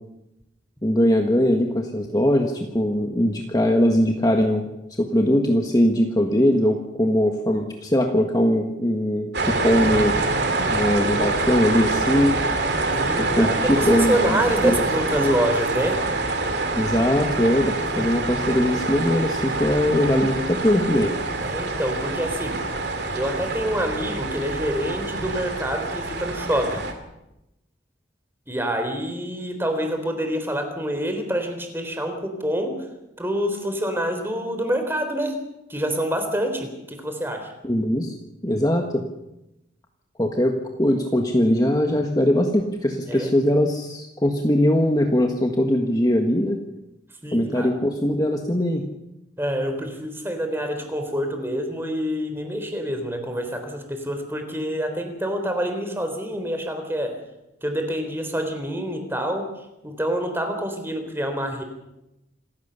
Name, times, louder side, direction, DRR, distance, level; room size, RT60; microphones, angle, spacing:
voice 1, 0.8-4.7 5.0-10.2 10.7-12.4 13.2-14.8 15.2-15.3 16.7-21.1 37.6-38.1 38.4-39.0 40.2-46.6 47.3-48.8, left 1 dB, 20° left, 3 dB, 1.6 m, -21 dB
sound 1, 9.3-26.9, right 2 dB, 55° right, 2.9 m, -25 dB
voice 2, 12.9-16.0 17.9-18.2 21.4-22.6 23.1-26.8 28.5-32.9 33.2-35.4 35.7-37.5 43.1-43.4 47.2-47.7 49.4-57.2 57.6-59.5 59.8-61.6, equal, 10° right, 6 dB, 3.5 m, -27 dB
27.5 x 16.0 x 7.0 m, 0.91 s
head